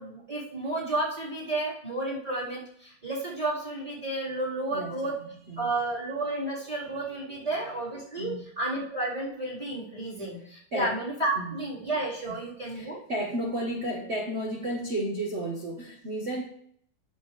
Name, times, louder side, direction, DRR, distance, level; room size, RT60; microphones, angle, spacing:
voice 1, 0.0-5.2 5.6-13.0, right 2 dB, 15° right, -7 dB, 4.1 m, -32 dB
voice 2, 4.7-5.2 5.5-5.7 6.8-7.0 7.3-7.4 8.2-8.4 10.7-11.0 11.4-11.6 12.7-16.4, right 1 dB, 35° right, -1 dB, 1.3 m, -33 dB
10.0 x 7.1 x 3.3 m, 0.64 s
omnidirectional pair, 2.3 m